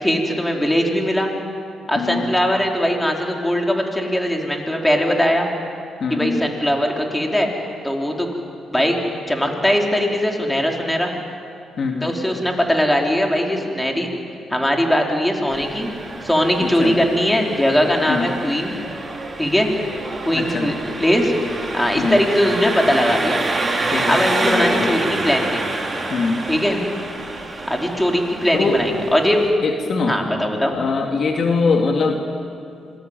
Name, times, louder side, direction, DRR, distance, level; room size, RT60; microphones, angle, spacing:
voice 1, 0.0-1.3 1.9-5.5 6.1-7.5 7.8-8.3 8.7-9.0 9.3-11.1 12.0-14.1 14.5-15.9 16.2-18.7 19.4-19.7 20.2-21.3 21.7-23.4 24.0-25.6 26.5-26.8 27.7-29.4 30.1-30.8, equal, 10° left, 1 dB, 4.8 m, -20 dB
voice 2, 2.0-2.3 6.0-6.4 11.8-12.1 16.6-17.0 18.1-18.3 20.3-20.7 22.0-22.2 23.9-24.9 26.1-26.4 28.5-28.8 29.6-30.2 30.7-32.2, left 4 dB, 55° left, 3 dB, 2.7 m, -22 dB
Engine, 15.5-29.5, right 2 dB, 30° right, 5.3 m, -27 dB
26.0 x 21.5 x 9.3 m, 2.4 s
supercardioid pair, 60°, 0 cm